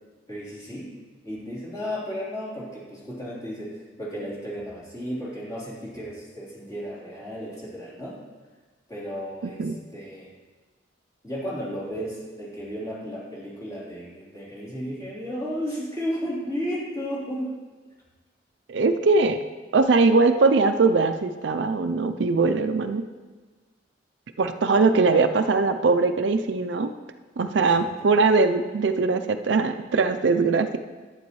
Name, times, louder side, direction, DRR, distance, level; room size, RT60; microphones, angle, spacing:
voice 1, 0.3-0.9 1.2-8.2 8.9-10.3 11.2-17.5 27.7-28.1, equal, 20° left, -8 dB, 3.4 m, -34 dB
voice 2, 18.7-19.4 19.7-23.0 24.4-26.9 27.4-30.8, right 3 dB, 70° right, 8 dB, 0.5 m, -21 dB
11.5 x 8.9 x 3.1 m, 1.4 s
head